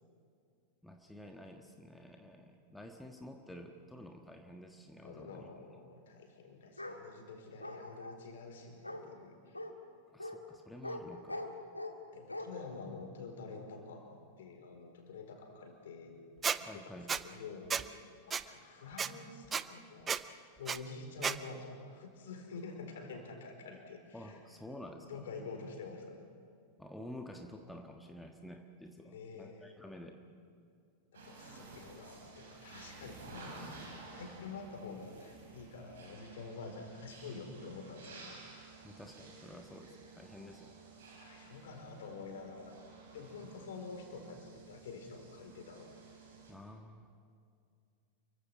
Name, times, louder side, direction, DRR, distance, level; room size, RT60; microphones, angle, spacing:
voice 1, 0.8-5.8 10.1-11.5 16.6-17.1 24.1-25.3 26.8-30.2 38.8-40.8 46.5-47.1, left 1 dB, 5° left, 3 dB, 1.6 m, -50 dB
voice 2, 5.0-9.6 12.1-16.1 16.6-24.4 25.0-26.3 29.0-29.7 31.1-38.4 41.2-42.8 43.1-45.9, left 4 dB, 60° left, 4 dB, 4.5 m, -48 dB
Bark, 6.8-7.0 7.6-8.2 8.8-9.0 9.5-9.7 10.2-10.4 10.8-11.0 11.3-12.0 12.3-12.5, left 1 dB, 85° left, 1.8 m, -41 dB
Squeak, 16.4-16.6 17.1-17.2 17.7-17.8 18.3-18.4 19.0-19.1 19.5-19.6 20.1-20.2 20.7-20.8 21.2-21.4, right 6 dB, 20° right, 0.7 m, -32 dB
sound 1, 31.1-46.5, right 4 dB, 60° right, 6.5 m, -54 dB
29.5 x 23.5 x 6.0 m, 2.3 s
figure-of-eight pair, 90°, 0 cm